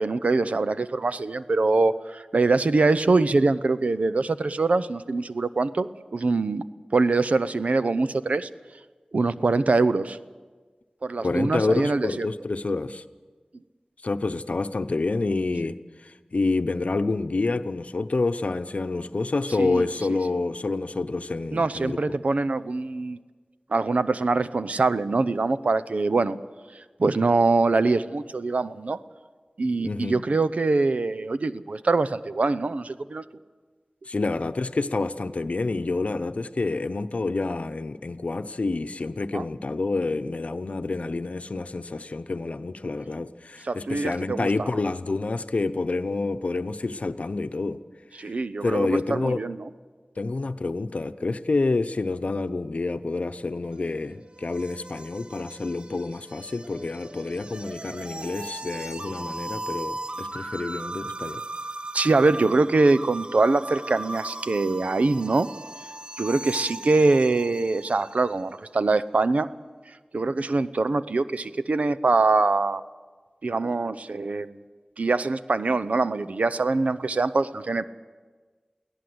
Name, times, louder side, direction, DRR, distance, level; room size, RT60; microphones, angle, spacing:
voice 1, 0.0-6.6 6.9-8.5 9.1-10.2 11.0-12.3 19.6-19.9 21.5-23.2 23.7-26.4 27.0-29.0 29.6-33.2 39.3-39.4 43.6-44.7 48.2-49.6 61.9-65.5 66.2-69.5 70.1-72.8 73.4-74.6 75.0-77.8, right 3 dB, 85° right, 13 dB, 0.7 m, -23 dB
voice 2, 11.2-13.0 14.0-15.8 16.0-22.1 29.8-30.2 34.1-47.8 48.2-48.3 48.6-49.4 50.2-61.4 70.2-70.3, left 3 dB, 75° left, 11 dB, 0.8 m, -28 dB
sound 1, 53.7-68.3, right 1 dB, 45° right, 0.6 m, -38 dB
23.5 x 17.0 x 7.9 m, 1.4 s
wide cardioid pair, 45°, 2 cm